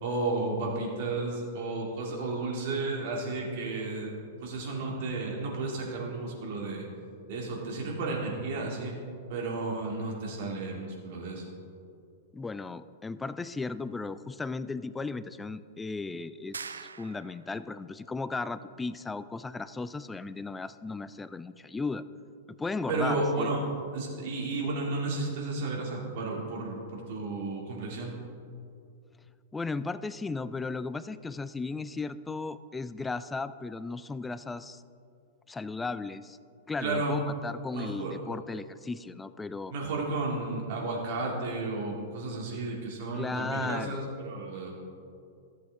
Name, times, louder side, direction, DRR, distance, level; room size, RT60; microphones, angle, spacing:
voice 1, 0.0-4.1 4.4-6.9 7.3-9.0 9.3-11.4 22.9-23.7 23.9-28.1 36.8-37.1 37.7-38.1 39.7-44.7, right 3 dB, 55° right, -1 dB, 2.2 m, -32 dB
voice 2, 12.3-22.1 22.5-23.5 29.5-34.8 35.5-36.4 36.7-39.7 43.1-44.0, left 3 dB, 10° left, 14 dB, 0.3 m, -36 dB
sound 1, 16.5-17.6, right 5 dB, 85° right, 0.3 m, -42 dB
14.0 x 7.7 x 3.5 m, 2.5 s
hypercardioid pair, 105°, 0 cm